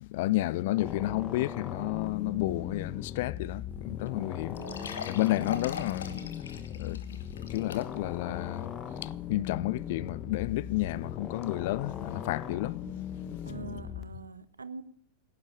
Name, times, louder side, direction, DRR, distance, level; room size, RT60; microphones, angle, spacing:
voice 1, 0.0-4.6 5.1-6.3 6.7-8.7 9.0-12.8, left 17 dB, 50° left, 0.4 m, -31 dB
sound 1, 0.8-14.0, left 9 dB, 30° left, 1.3 m, -39 dB
sound 2, 3.7-3.8 4.1-4.2 4.5-8.2 8.6-8.7 9.3-9.4, left 6 dB, 65° left, 1.4 m, -42 dB
voice 2, 4.6-4.9 13.5-14.8, right 4 dB, 75° right, 0.8 m, -43 dB
17.5 x 10.5 x 4.9 m
figure-of-eight pair, 90°, 0 cm